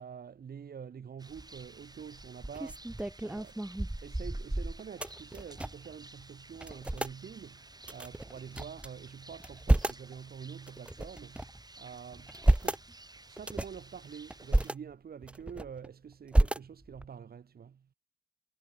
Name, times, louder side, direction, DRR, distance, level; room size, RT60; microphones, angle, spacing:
voice 1, 0.0-3.6 4.0-12.8 13.2-17.9, right 7 dB, 85° right, 2.1 m, -47 dB
Rain, 1.2-14.7, right 2 dB, 25° right, 7.4 m, -54 dB
sound 1, 1.3-1.7 2.2-5.9 6.2-6.3 6.6-7.2 7.8-8.9 9.3-10.1 10.7-11.6 12.1-12.8 13.4-13.8 14.3-14.7 15.2-15.9 16.3-17.1, right 1 dB, 5° right, 0.4 m, -30 dB
cardioid pair, 65°, 15 cm